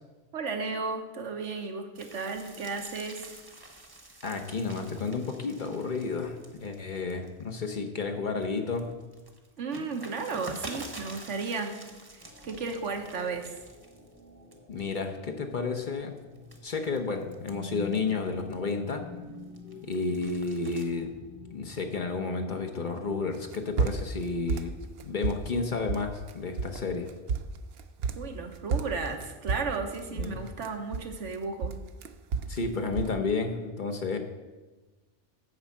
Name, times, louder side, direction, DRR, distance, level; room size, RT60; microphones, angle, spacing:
voice 1, 0.3-3.3 9.6-11.8 12.1-13.5 28.2-31.8, right 4 dB, 80° right, 5 dB, 1.3 m, -34 dB
sound 1, 1.9-7.9 8.3-14.2 14.5-15.0 15.6-18.9 19.3-20.8, right 1 dB, 20° right, 0.9 m, -47 dB
voice 2, 4.2-8.9 14.7-16.1 16.6-19.1 19.8-21.2 21.5-24.7 25.0-27.1 30.1-30.4 32.5-34.2, left 4 dB, 45° left, 5 dB, 0.9 m, -31 dB
sound 2, 12.2-23.7, left 4 dB, 15° left, 1.0 m, -48 dB
sound 3, 23.3-24.2 24.5-25.5 25.9-26.3 26.6-26.8 27.1-28.4 28.7-31.3 31.6-32.6 32.9-33.2, right 5 dB, 65° right, 0.8 m, -31 dB
9.3 x 5.4 x 7.3 m, 1.2 s
omnidirectional pair, 1.2 m